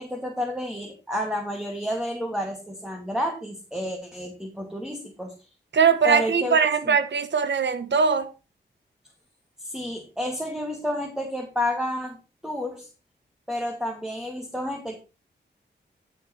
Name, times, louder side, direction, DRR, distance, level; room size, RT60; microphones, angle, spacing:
voice 1, 0.0-5.3 6.0-6.6 9.6-12.2 12.4-12.9 13.5-15.0, left 1 dB, 5° right, 2.4 m, -30 dB
voice 2, 5.7-8.3, right 6 dB, 70° right, 1.3 m, -21 dB
13.5 x 5.8 x 4.5 m
cardioid pair, 55°, 19 cm